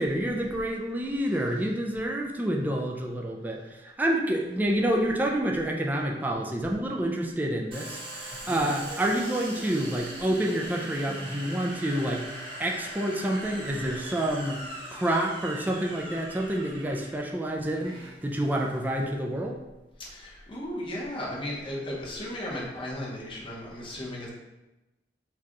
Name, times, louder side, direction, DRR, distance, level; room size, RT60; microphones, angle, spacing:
voice 1, 0.0-8.0 8.2-14.6 14.9-19.5, right 1 dB, 10° right, 0 dB, 0.3 m, -28 dB
Domestic sounds home sounds, 7.7-19.1, right 1 dB, 30° right, 0.8 m, -41 dB
voice 2, 8.4-8.8 20.0-24.3, left 1 dB, 30° left, -4 dB, 0.9 m, -36 dB
4.7 x 2.3 x 2.9 m, 1.0 s
head